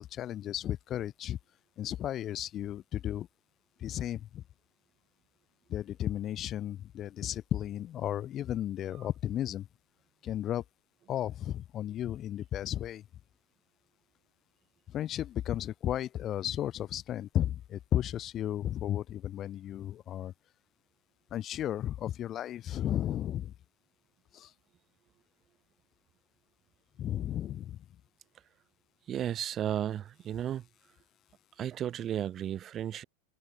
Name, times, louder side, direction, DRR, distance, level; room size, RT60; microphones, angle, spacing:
voice 1, 0.0-1.4 1.8-3.3 3.8-4.4 5.7-9.7 10.2-10.6 11.1-13.0 14.9-20.3 21.3-23.5 24.3-24.5 27.0-27.9, left 11 dB, 30° left, 0.4 m, -34 dB
voice 2, 29.1-30.7 31.6-33.0, right 10 dB, 30° right, 0.4 m, -34 dB
figure-of-eight pair, 90°, 0 cm